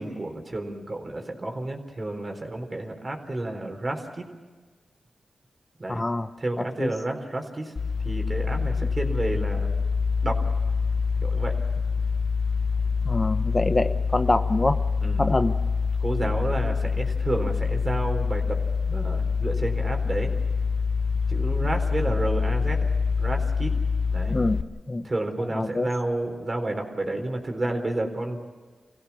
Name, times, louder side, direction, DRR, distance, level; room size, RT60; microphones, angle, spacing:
voice 1, 0.0-4.2 5.8-6.0 6.4-7.7 8.0-9.7 10.2-10.4 11.2-11.6 15.0-15.2 16.0-20.3 21.3-22.9 23.2-23.7 24.1-24.4 25.0-28.4, right 2 dB, 35° right, 4 dB, 4.1 m, -30 dB
voice 2, 5.9-6.3 6.8-6.9 13.0-14.8 15.2-15.6 24.3-25.1 25.5-25.9, left 2 dB, 30° left, 8 dB, 1.0 m, -25 dB
sound 1, 7.8-24.6, left 5 dB, 55° left, 1.3 m, -25 dB
26.0 x 16.5 x 7.2 m, 1.4 s
cardioid pair, 55°, 0 cm